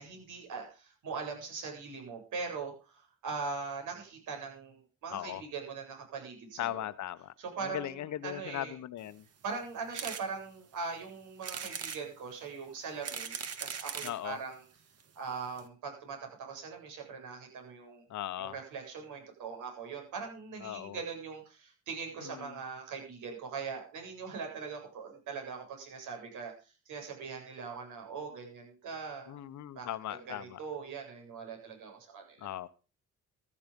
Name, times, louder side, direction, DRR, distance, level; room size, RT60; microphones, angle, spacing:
voice 1, 0.0-6.9 7.4-8.7 9.4-14.6 15.2-18.0 18.4-29.4 29.7-29.9 30.3-32.5, right 5 dB, 80° right, 2 dB, 7.9 m, -41 dB
voice 2, 5.1-5.4 6.6-7.3 7.6-9.2 14.0-14.4 18.1-18.6 20.6-21.0 22.2-22.6 29.3-30.6 32.4-32.7, left 12 dB, 70° left, 14 dB, 1.1 m, -38 dB
sound 1, 9.9-10.2 10.7-10.8 11.4-12.0 12.8-14.2 15.0-15.1 15.3-15.4 15.6-15.7, right 7 dB, 55° right, 2.2 m, -39 dB
14.5 x 12.0 x 5.4 m, 0.35 s
cardioid pair, 90°, 30 cm